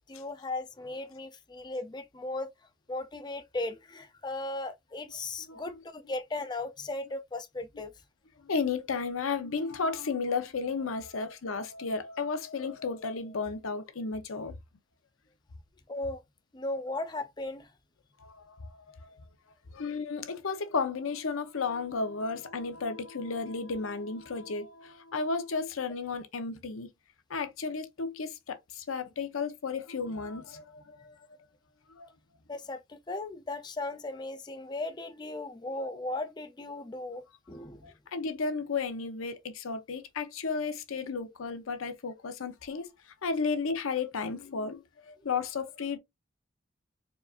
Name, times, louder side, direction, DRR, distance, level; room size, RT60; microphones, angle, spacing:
voice 1, 0.1-2.5 2.9-7.9 15.9-16.2 16.5-17.7 32.5-37.9, left 2 dB, 20° left, 0.4 m, -37 dB
voice 2, 5.5-5.8 8.4-14.6 18.2-19.2 19.7-26.9 27.3-31.2 31.9-32.1 37.8-46.0, left 4 dB, 90° left, 0.7 m, -33 dB
4.5 x 2.6 x 2.4 m
head